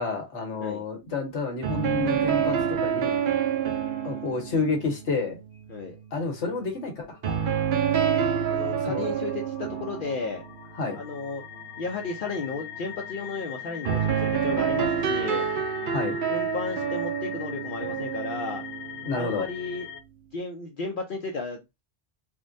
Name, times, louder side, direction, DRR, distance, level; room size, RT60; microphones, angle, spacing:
voice 1, 0.0-3.2 4.0-5.4 6.1-7.2 8.8-9.1 10.8-11.0 15.9-16.2 19.0-19.5, left 4 dB, 90° left, 1.4 m, -29 dB
sound 1, 1.6-6.5 7.2-11.0 13.8-19.4, right 8 dB, 55° right, 0.6 m, -28 dB
sound 2, 6.8-20.0, left 10 dB, 75° left, 1.1 m, -41 dB
voice 2, 8.5-10.4 10.9-11.5 11.8-15.5 16.3-18.6 19.1-19.9 20.3-21.8, left 3 dB, 55° left, 0.6 m, -33 dB
3.6 x 2.2 x 2.5 m
omnidirectional pair, 1.2 m